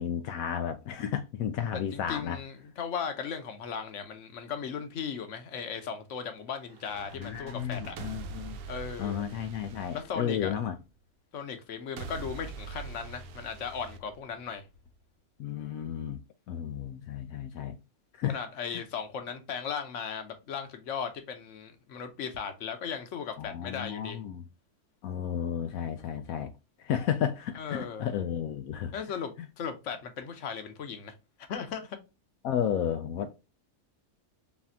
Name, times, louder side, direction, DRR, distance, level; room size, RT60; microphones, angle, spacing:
voice 1, 0.0-2.4 7.1-8.6 9.0-10.7 15.4-16.2 16.5-17.7 18.2-18.4 18.7-18.8 23.4-24.4 25.0-26.5 26.8-28.9 32.4-33.4, left 9 dB, 80° left, 1.1 m, -32 dB
voice 2, 1.7-8.0 8.7-9.3 9.9-10.5 11.3-14.6 18.2-24.2 27.6-28.1 28.9-31.1 31.5-32.0, left 6 dB, 60° left, 1.2 m, -37 dB
sound 1, 6.7-10.8 12.0-14.8, right 4 dB, 75° right, 1.0 m, -43 dB
4.2 x 3.5 x 2.7 m
omnidirectional pair, 1.5 m